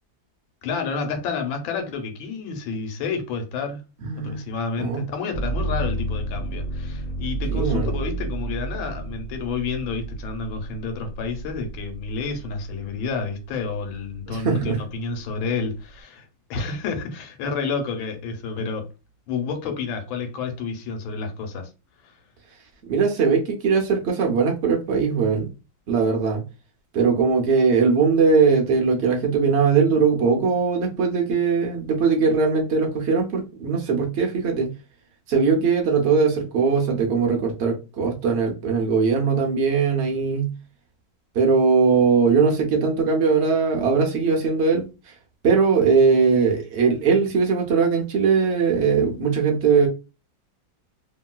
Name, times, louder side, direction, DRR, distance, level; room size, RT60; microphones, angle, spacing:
voice 1, 0.6-3.8 4.2-18.9 19.3-21.7 22.0-22.1, left 5 dB, 85° left, 1.5 m, -30 dB
voice 2, 4.0-4.4 4.8-5.0 7.5-7.9 14.3-14.8 22.9-25.4 25.9-26.4 26.9-34.7 35.3-40.5 41.3-44.8 45.4-49.9, right 5 dB, 65° right, 0.6 m, -20 dB
sound 1, 5.3-13.1 13.6-14.4, right 2 dB, 50° left, 0.8 m, -31 dB
3.0 x 2.8 x 2.2 m
omnidirectional pair, 2.1 m